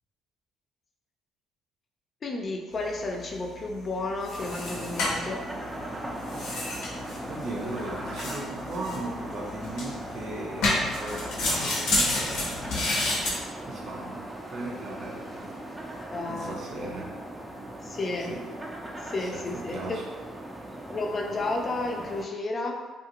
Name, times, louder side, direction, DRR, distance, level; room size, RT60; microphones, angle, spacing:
voice 1, 2.2-5.4 16.1-16.6 17.8-18.4 19.0-20.0 20.9-22.8, left 2 dB, 40° left, 1 dB, 0.5 m, -32 dB
sound 1, 2.7-13.4, left 2 dB, 85° left, 0.7 m, -31 dB
sound 2, 4.4-22.3, right 1 dB, 10° right, 0.5 m, -39 dB
voice 2, 7.3-12.7 13.6-14.2 14.5-15.5 16.2-17.1 18.3-18.4 19.2-20.0, right 2 dB, 55° right, -3 dB, 0.7 m, -37 dB
2.7 x 2.4 x 2.9 m, 1.3 s
supercardioid pair, 75°, 0 cm